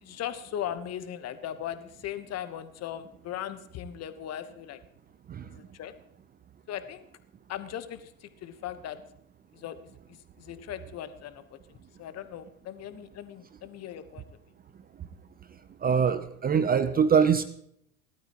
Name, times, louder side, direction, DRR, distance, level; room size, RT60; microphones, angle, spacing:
voice 1, 0.0-4.8 5.5-5.9 6.7-7.0 7.5-9.0 9.5-9.7 10.1-11.4 11.7-14.3 16.8-17.1, left 10 dB, 35° left, 11 dB, 1.2 m, -38 dB
voice 2, 15.8-17.4, right 7 dB, 20° right, 12 dB, 0.7 m, -23 dB
18.5 x 12.5 x 3.0 m, 0.71 s
hypercardioid pair, 85°, 43 cm